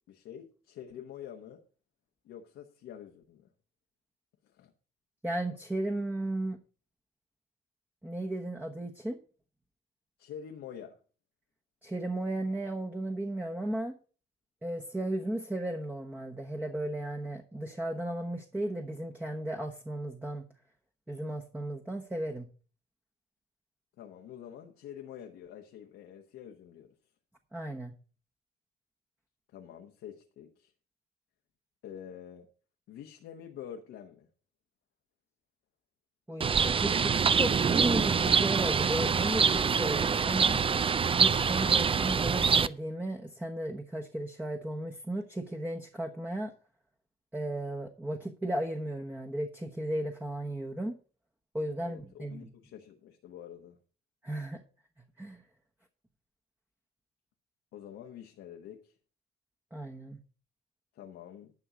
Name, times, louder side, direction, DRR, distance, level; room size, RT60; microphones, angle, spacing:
voice 1, 0.1-1.6 2.2-3.5 4.5-4.7 10.2-11.0 24.0-26.9 29.5-30.7 31.8-32.5 32.9-34.3 51.8-53.8 57.7-58.9 60.9-61.5, left 9 dB, 85° left, 1.3 m, -47 dB
voice 2, 5.2-6.6 8.0-9.2 11.8-14.0 14.6-20.4 21.1-22.5 27.5-27.9 36.3-40.6 41.2-46.5 47.3-51.0 51.5-52.5 54.2-54.6 55.2-55.4 59.7-60.2, right 1 dB, 10° right, 1.1 m, -35 dB
Bird, 36.4-42.7, right 6 dB, 25° right, 0.4 m, -25 dB
11.0 x 5.5 x 6.2 m
cardioid pair, 90°, 20 cm